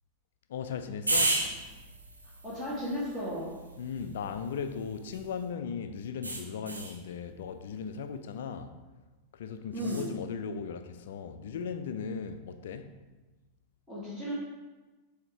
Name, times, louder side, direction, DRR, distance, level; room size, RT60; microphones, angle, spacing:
voice 1, 0.5-1.5 3.8-8.8 9.3-13.0, left 6 dB, 60° left, 0.4 m, -37 dB
sound 1, 1.1-5.5 6.2-7.0 9.7-10.1, right 2 dB, 80° right, 0.8 m, -34 dB
voice 2, 2.4-3.5 9.7-10.1 13.9-14.3, equal, 10° right, 1.8 m, -35 dB
7.6 x 2.8 x 4.6 m
figure-of-eight pair, 90°, 0 cm